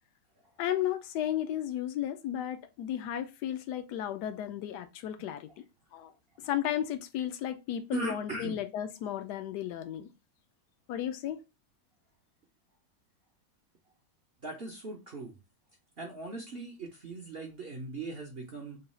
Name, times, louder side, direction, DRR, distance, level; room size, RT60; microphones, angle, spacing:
voice 1, 0.6-5.6 5.9-6.1 6.4-10.1 10.9-11.4, left 11 dB, 75° left, 1.1 m, -34 dB
voice 2, 7.9-8.6 14.4-15.3 16.0-18.8, right 3 dB, 55° right, 0.6 m, -39 dB
3.9 x 2.3 x 4.1 m
omnidirectional pair, 1.9 m